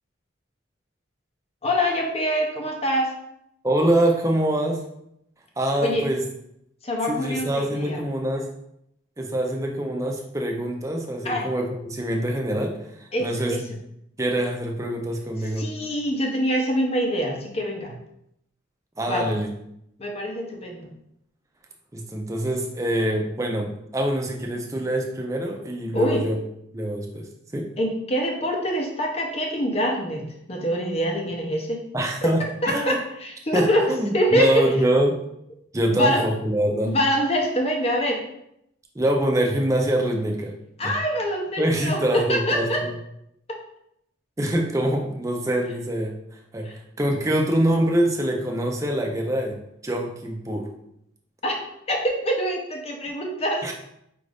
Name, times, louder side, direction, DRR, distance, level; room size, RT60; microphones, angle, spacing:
voice 1, 1.6-3.1 5.8-6.1 6.8-8.0 11.2-11.5 13.1-13.6 15.6-18.0 19.1-19.3 20.0-20.9 25.9-26.3 27.8-31.9 32.2-34.7 35.9-36.3 36.8-38.2 40.8-42.9 43.5-43.6 46.6-46.7 51.4-51.6 51.9-53.7, equal, 30° left, 1 dB, 0.7 m, -25 dB
voice 2, 3.6-4.8 5.6-6.2 7.1-8.5 9.2-13.8 14.2-15.7 19.0-19.5 21.9-26.4 26.7-27.7 31.9-33.0 33.5-35.2 35.7-37.0 38.9-40.5 40.8-40.9 41.6-42.7 44.4-50.7 53.6-53.7, right 1 dB, 15° right, 1 dB, 0.5 m, -25 dB
4.9 x 2.5 x 3.4 m, 0.77 s
head